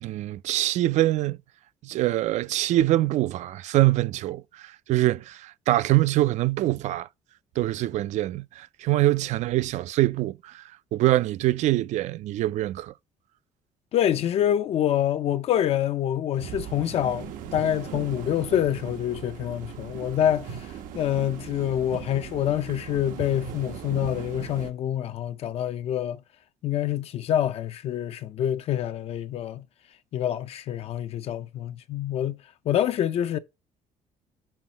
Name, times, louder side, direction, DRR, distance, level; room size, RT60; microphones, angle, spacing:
voice 1, 0.0-1.4 1.8-7.1 7.6-10.6 10.9-12.9 21.9-22.0, right 16 dB, 60° right, 0.4 m, -24 dB
voice 2, 13.9-26.2 26.6-29.7 30.1-32.4 32.7-33.4, left 11 dB, 50° left, 0.4 m, -26 dB
sound 1, 16.4-24.7, right 9 dB, 85° right, 1.0 m, -39 dB
6.9 x 5.7 x 2.8 m
cardioid pair, 160°, 13 cm